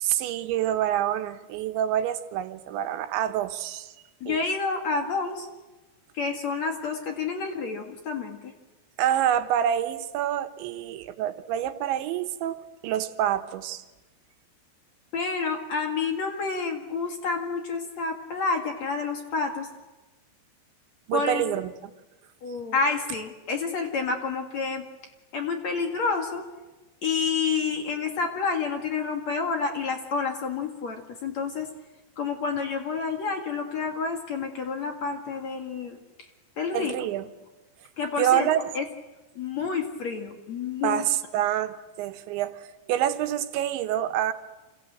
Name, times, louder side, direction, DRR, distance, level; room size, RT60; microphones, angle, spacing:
voice 1, 0.0-3.9 4.3-4.4 9.0-13.9 21.1-21.9 36.7-37.3 38.2-38.6 40.8-44.3, right 11 dB, 85° right, 8 dB, 3.6 m, -27 dB
voice 2, 4.2-5.5 6.1-8.5 15.1-19.7 21.1-21.4 22.4-24.8 25.3-26.4 27.0-31.7 32.2-36.0 36.6-36.9 38.0-38.5 38.7-38.8 39.4-41.0, left 5 dB, 50° left, 4 dB, 2.7 m, -29 dB
28.0 x 27.0 x 7.8 m, 1.1 s
omnidirectional pair, 5.1 m